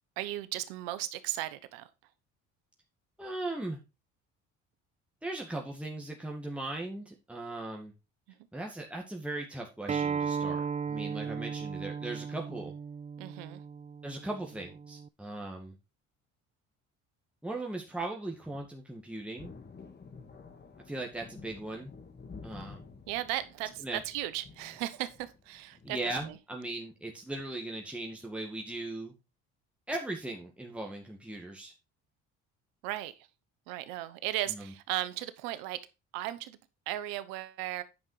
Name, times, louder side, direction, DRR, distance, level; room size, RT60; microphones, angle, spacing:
voice 1, 0.2-1.9 13.2-13.6 23.1-26.4 32.8-33.1 33.7-35.8 36.1-36.6 36.9-37.8, right 14 dB, 85° right, 1.0 m, -36 dB
voice 2, 3.2-3.8 5.2-7.9 8.5-12.7 14.0-15.7 17.4-19.5 20.9-21.9 22.4-22.8 23.8-24.0 25.8-29.1 29.9-31.7 34.5-34.7, right 2 dB, 5° right, 1.9 m, -38 dB
Acoustic guitar, 9.9-15.1, right 6 dB, 20° right, 0.4 m, -36 dB
Thunder, 19.4-26.4, left 4 dB, 30° left, 1.7 m, -51 dB
9.5 x 5.3 x 4.9 m
supercardioid pair, 75°, 34 cm